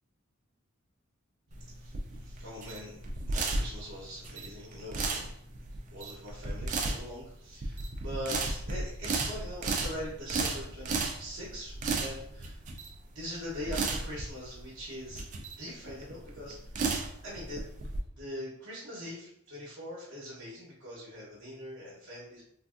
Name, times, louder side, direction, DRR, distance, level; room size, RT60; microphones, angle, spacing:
sound 1, 1.5-18.0, right 3 dB, 35° right, 0.4 m, -34 dB
voice 1, 1.5-12.6 13.1-15.3 15.6-16.6 17.2-17.6 18.1-22.4, equal, 65° right, -7 dB, 0.9 m, -42 dB
3.4 x 2.6 x 2.4 m, 0.73 s
head